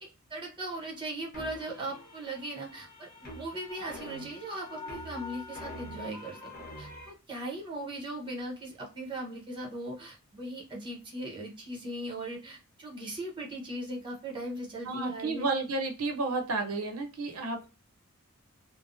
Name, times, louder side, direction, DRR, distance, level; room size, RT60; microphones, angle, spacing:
voice 1, 0.0-15.5, right 1 dB, 20° right, -1 dB, 0.9 m, -39 dB
sound 1, 1.3-7.1, left 2 dB, 40° left, 1.0 m, -45 dB
voice 2, 14.9-17.7, right 3 dB, 85° right, 4 dB, 0.7 m, -31 dB
3.4 x 2.1 x 2.6 m, 0.30 s
head